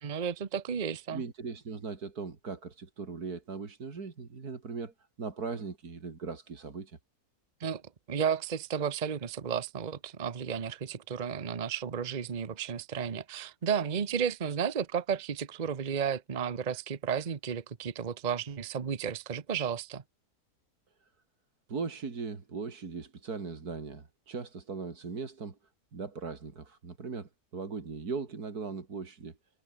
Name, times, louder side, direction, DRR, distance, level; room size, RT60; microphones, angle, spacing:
voice 1, 0.0-1.2 7.6-7.8 8.1-20.0, right 7 dB, 35° right, 1.0 m, -33 dB
voice 2, 1.1-7.0 21.0-21.1 21.7-25.6 25.9-29.4, right 4 dB, 75° right, 3.1 m, -39 dB
omnidirectional pair, 1.6 m